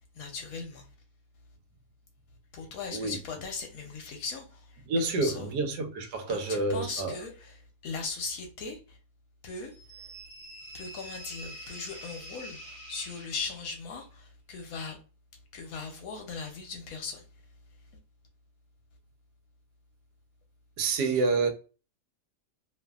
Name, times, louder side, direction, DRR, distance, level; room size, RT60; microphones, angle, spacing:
voice 1, 0.1-0.9 2.5-5.5 6.3-9.0 9.4-10.1 10.7-15.0 15.5-17.2, left 4 dB, 70° left, 0.9 m, -39 dB
voice 2, 4.9-7.1 20.8-21.5, right 3 dB, 80° right, 1.3 m, -28 dB
sound 1, 9.7-13.9, right 1 dB, 15° right, 0.7 m, -46 dB
2.6 x 2.6 x 2.3 m
omnidirectional pair, 1.8 m